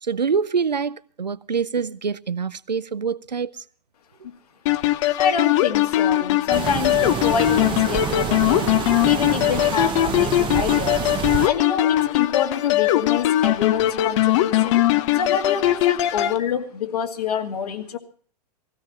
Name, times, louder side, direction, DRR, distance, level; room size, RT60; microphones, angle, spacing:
voice 1, 0.0-3.6, right 6 dB, 85° right, 0.7 m, -25 dB
sound 1, 4.7-16.4, left 14 dB, 45° left, 0.9 m, -20 dB
voice 2, 5.2-8.7 9.0-11.1 11.4-14.8 15.1-18.0, left 7 dB, 65° left, 2.3 m, -27 dB
sound 2, 6.5-11.5, right 9 dB, 25° right, 1.0 m, -28 dB
17.5 x 16.5 x 4.3 m
figure-of-eight pair, 100°, 21 cm